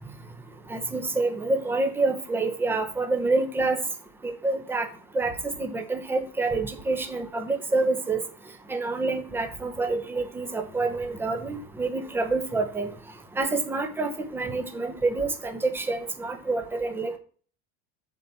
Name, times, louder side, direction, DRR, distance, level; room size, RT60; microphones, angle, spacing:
voice 1, 0.7-3.8 4.2-4.9 5.1-8.2 8.7-12.9 13.4-17.2, right 3 dB, 5° right, 6 dB, 0.8 m, -27 dB
7.1 x 4.2 x 6.8 m, 0.42 s
cardioid pair, 165°, 33 cm